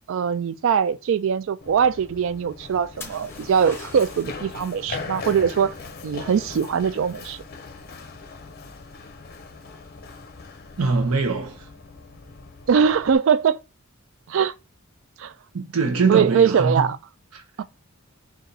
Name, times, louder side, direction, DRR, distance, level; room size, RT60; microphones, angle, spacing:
voice 1, 0.1-5.7 6.0-7.4 12.7-13.6 14.3-14.5 15.2-15.3 16.1-17.0 17.6-17.7, right 7 dB, 60° right, 0.3 m, -21 dB
Run, 1.6-13.2, left 4 dB, 45° left, 0.6 m, -39 dB
sound 1, 3.0-4.5 8.1-8.6, left 3 dB, 10° left, 0.9 m, -42 dB
voice 2, 10.8-11.7 15.5-16.9 17.3-17.4, right 4 dB, 80° right, 0.7 m, -22 dB
4.0 x 2.5 x 3.9 m
head